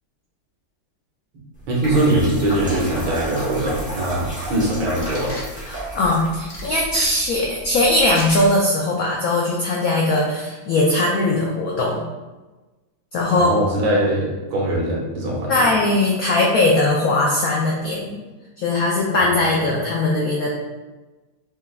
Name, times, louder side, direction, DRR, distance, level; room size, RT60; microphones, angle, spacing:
sound 1, 1.5-8.5, right 1 dB, 10° right, 0.4 m, -33 dB
voice 1, 1.7-5.4 13.3-15.7, right 1 dB, 80° right, -4 dB, 1.9 m, -21 dB
sound 2, 5.0-5.5 6.5-7.1 8.1-8.5, left 2 dB, 45° left, 0.9 m, -33 dB
voice 2, 5.6-12.0 13.1-13.5 15.5-18.2 18.6-20.6, left 2 dB, 80° left, -2 dB, 0.8 m, -20 dB
4.7 x 3.3 x 2.3 m, 1.2 s
omnidirectional pair, 2.1 m